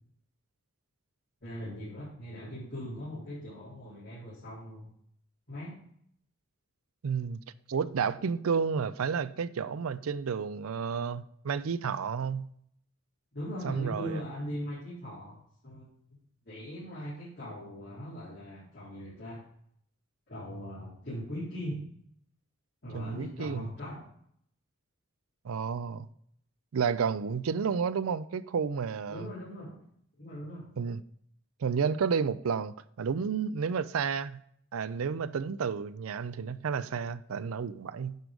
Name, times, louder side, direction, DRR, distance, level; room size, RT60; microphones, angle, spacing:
voice 1, 1.4-4.9 5.5-5.8 13.3-15.4 15.6-15.8 16.4-19.4 20.3-21.8 22.8-24.0 29.1-29.8 30.2-30.7, equal, 50° left, 4.2 m, -40 dB
voice 2, 7.0-7.4 7.7-12.5 13.6-14.2 22.9-23.7 25.4-26.1 26.7-29.3 30.8-31.0 31.6-34.4 34.7-38.2, right 6 dB, 75° right, 0.4 m, -31 dB
9.3 x 4.9 x 5.2 m
head